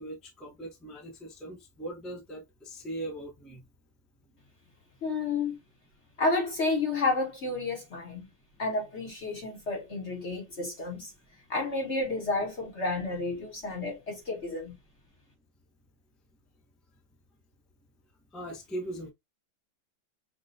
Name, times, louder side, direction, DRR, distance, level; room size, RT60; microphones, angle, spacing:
voice 1, 0.0-3.6 18.3-19.1, right 1 dB, ahead, 0.5 m, -40 dB
voice 2, 5.0-5.6 6.2-8.3 8.6-11.1 11.5-14.8, left 3 dB, 45° left, 1.0 m, -31 dB
5.9 x 2.3 x 2.7 m
omnidirectional pair, 2.1 m